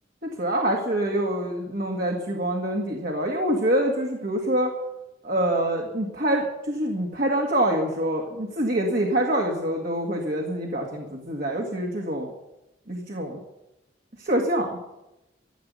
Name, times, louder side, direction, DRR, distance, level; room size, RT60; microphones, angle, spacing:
voice 1, 0.2-4.7 5.2-12.3 12.9-13.4 14.2-14.8, right 1 dB, 50° right, 0 dB, 2.0 m, -25 dB
14.5 x 8.0 x 9.5 m, 0.93 s
head